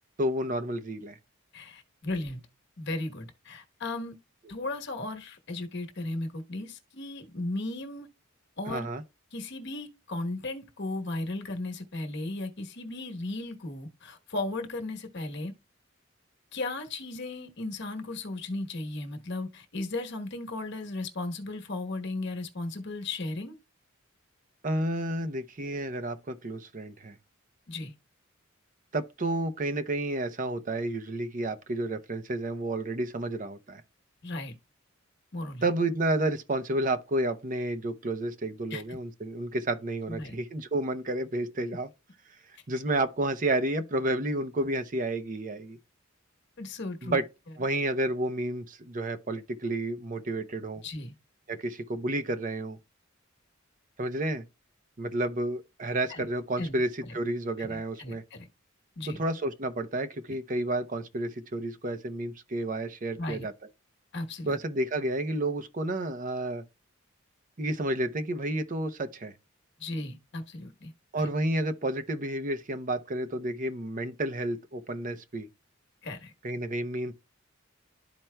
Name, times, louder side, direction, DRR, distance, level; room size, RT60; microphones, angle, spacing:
voice 1, 0.2-1.2 8.7-9.0 24.6-27.2 28.9-33.8 35.6-41.9 42.7-45.8 47.0-47.2 47.6-50.8 51.5-52.8 54.0-54.4 55.0-58.2 59.2-63.5 64.5-66.6 67.6-69.3 71.1-75.5 76.4-77.1, right 1 dB, 40° right, 0.6 m, -31 dB
voice 2, 1.5-2.4 2.8-4.2 4.5-8.1 8.6-8.9 9.3-15.5 16.5-23.6 27.7-27.9 34.2-34.5 35.3-35.7 38.7-38.8 40.1-40.3 46.6-47.2 50.8-51.1 56.1-56.3 56.6-57.2 57.6-58.5 59.0-59.2 63.2-63.5 64.1-64.6 69.8-71.3 76.0-76.3, left 2 dB, 55° left, 1.1 m, -36 dB
12.0 x 4.4 x 2.2 m
head